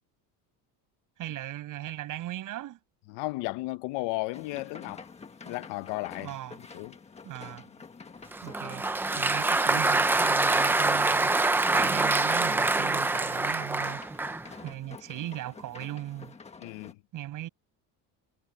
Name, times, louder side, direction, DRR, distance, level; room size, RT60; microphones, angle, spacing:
voice 1, 1.2-2.8 6.2-6.6 7.2-7.7 8.4-8.9 9.2-14.2 14.6-16.3 17.1-17.5, right 14 dB, 45° right, 5.6 m, -38 dB
voice 2, 3.1-5.1 5.5-6.3 6.7-7.0 11.8-11.9 16.6-17.0, left 21 dB, 80° left, 1.1 m, -34 dB
sound 1, 4.3-16.9, left 5 dB, 15° left, 1.4 m, -48 dB
Applause, 8.3-14.5, right 2 dB, 5° right, 0.3 m, -25 dB
cardioid pair, 170°, 42 cm